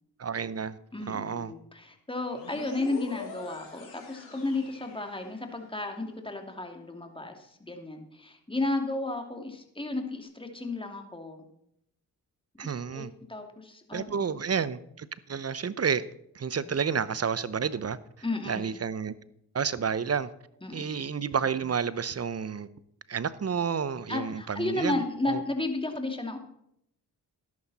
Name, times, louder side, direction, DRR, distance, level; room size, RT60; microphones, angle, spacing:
voice 1, 0.2-0.8 1.1-1.5 12.6-13.1 13.9-16.0 16.3-18.0 18.5-19.1 19.5-20.3 20.7-22.7 23.1-25.0 25.3-25.4, right 6 dB, 40° right, 17 dB, 0.8 m, -30 dB
voice 2, 0.9-11.5 12.5-14.4 16.6-16.8 18.2-18.8 20.6-20.9 24.1-26.4, left 2 dB, 15° left, 4 dB, 2.7 m, -33 dB
sound 1, 2.3-5.8, left 3 dB, 85° left, 4.1 m, -44 dB
13.0 x 11.0 x 4.3 m, 0.73 s
supercardioid pair, 45°, 40 cm